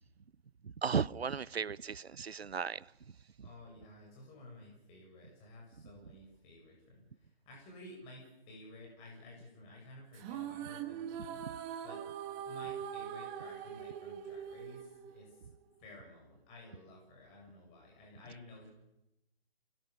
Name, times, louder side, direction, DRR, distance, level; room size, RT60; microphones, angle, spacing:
voice 1, 0.8-2.8, right 6 dB, 85° right, 0.9 m, -35 dB
voice 2, 3.4-11.4 11.8-12.0 12.4-15.5 15.8-18.7, left 1 dB, 20° left, 7.4 m, -54 dB
sound 1, 10.1-15.6, right 9 dB, 20° right, 1.7 m, -42 dB
29.0 x 21.0 x 6.9 m
figure-of-eight pair, 145°, 30 cm